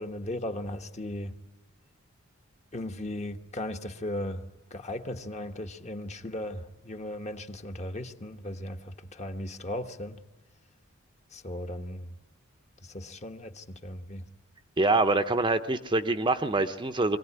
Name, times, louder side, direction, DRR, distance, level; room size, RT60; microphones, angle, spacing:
voice 1, 0.0-1.3 2.7-10.2 11.3-12.1 12.8-14.3, left 1 dB, 30° left, 1.2 m, -37 dB
voice 2, 14.8-17.2, right 2 dB, 20° right, 0.7 m, -25 dB
23.5 x 17.0 x 9.7 m
head